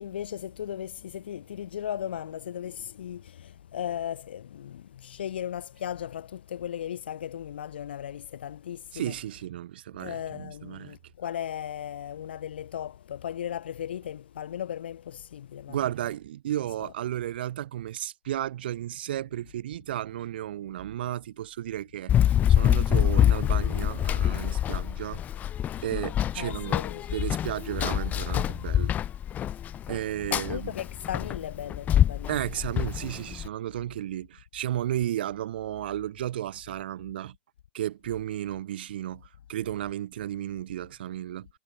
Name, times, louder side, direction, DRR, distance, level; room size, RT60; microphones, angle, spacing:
voice 1, 0.0-9.2 10.0-15.8 16.8-16.9 26.4-27.2 30.3-32.4, left 10 dB, 75° left, 0.3 m, -36 dB
voice 2, 8.9-11.0 15.7-22.1 22.5-25.2 25.8-26.8 27.1-29.0 29.9-30.7 32.3-37.4 37.7-41.5, right 12 dB, 65° right, 1.2 m, -33 dB
Run, 22.1-33.5, left 10 dB, 30° left, 0.6 m, -26 dB
hypercardioid pair, 95°, 6 cm